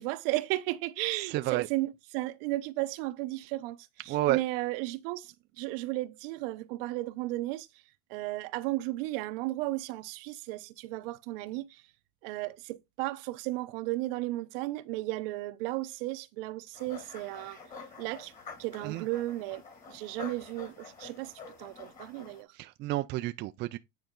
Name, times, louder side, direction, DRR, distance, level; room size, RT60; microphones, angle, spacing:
voice 1, 0.0-7.7 8.1-11.8 12.2-17.6 18.0-18.3 18.6-19.6 19.9-21.3 21.6-22.5, right 18 dB, 65° right, 0.8 m, -34 dB
voice 2, 1.3-1.7 4.1-4.4 18.8-19.0 22.5-23.8, right 16 dB, 35° right, 0.4 m, -30 dB
sound 1, 16.7-22.4, left 4 dB, 25° left, 2.3 m, -47 dB
9.3 x 4.3 x 3.7 m
supercardioid pair, 135°, 30 cm